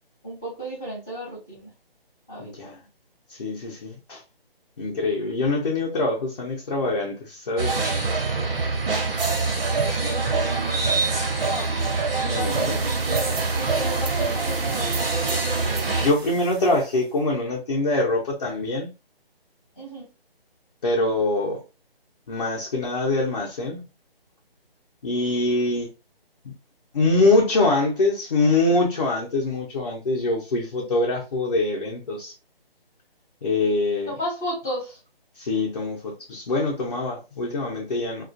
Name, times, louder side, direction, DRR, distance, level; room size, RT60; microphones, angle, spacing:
voice 1, 0.2-1.7 2.3-2.7 11.4-11.7 12.3-15.1 19.8-20.1 34.1-35.0, equal, 5° left, 0.5 m, -33 dB
voice 2, 2.4-2.8 3.3-4.2 4.8-7.9 12.3-12.8 16.0-18.9 20.8-21.6 22.3-23.8 25.0-25.9 26.4-26.5 26.9-32.3 33.4-34.1 35.4-38.2, left 2 dB, 40° left, 0.6 m, -24 dB
sound 1, 7.6-16.1, right 3 dB, 65° right, 0.9 m, -24 dB
sound 2, 12.5-17.2, right 5 dB, 90° right, 0.5 m, -36 dB
2.4 x 2.4 x 2.4 m
figure-of-eight pair, 155°, 30 cm